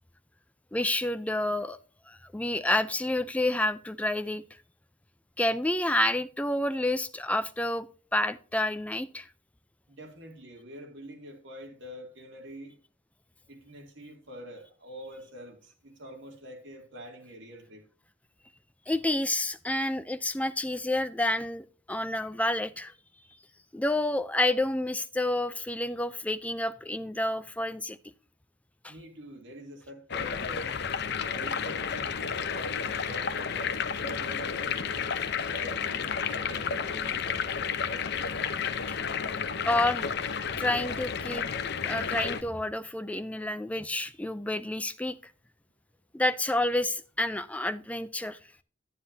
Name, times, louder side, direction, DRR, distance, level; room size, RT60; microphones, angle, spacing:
voice 1, 0.7-1.8 2.1-4.4 5.4-7.9 8.1-9.3 18.9-22.9 23.7-28.0 28.8-28.9 35.0-35.1 38.9-39.0 39.6-40.1 40.6-41.5 41.8-45.2 46.1-48.4, left 1 dB, 5° left, 0.4 m, -29 dB
voice 2, 9.9-12.8 13.5-17.9 28.9-30.8 31.3-35.1 35.4-38.5, equal, 60° right, 2.7 m, -46 dB
sound 1, 30.1-42.4, left 6 dB, 55° left, 0.7 m, -31 dB
9.9 x 9.8 x 2.7 m
head